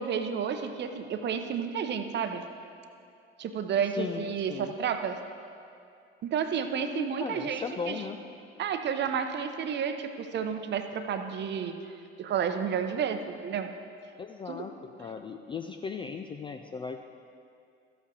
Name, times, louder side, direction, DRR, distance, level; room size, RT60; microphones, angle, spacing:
voice 1, 0.0-2.4 3.4-5.2 6.2-8.0 8.6-11.7 12.2-13.7 14.5-14.6, right 7 dB, 35° right, 7 dB, 0.8 m, -31 dB
voice 2, 4.0-4.7 6.9-8.2 14.2-17.1, left 5 dB, 15° left, 5 dB, 0.3 m, -37 dB
13.5 x 8.0 x 3.9 m, 2.5 s
figure-of-eight pair, 60°, 31 cm